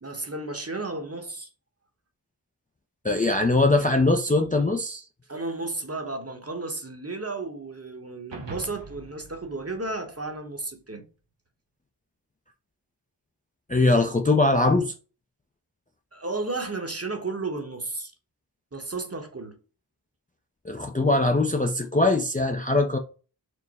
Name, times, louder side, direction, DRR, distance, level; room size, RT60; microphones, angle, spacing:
voice 1, 0.0-1.5 5.3-11.0 16.1-18.1 18.7-19.6, right 3 dB, 35° right, 0.9 m, -33 dB
voice 2, 3.0-5.0 13.7-14.9 20.7-23.0, left 2 dB, 20° left, 0.4 m, -21 dB
sound 1, 8.3-10.8, right 3 dB, 80° right, 0.9 m, -43 dB
4.5 x 2.1 x 4.1 m
wide cardioid pair, 40°, 42 cm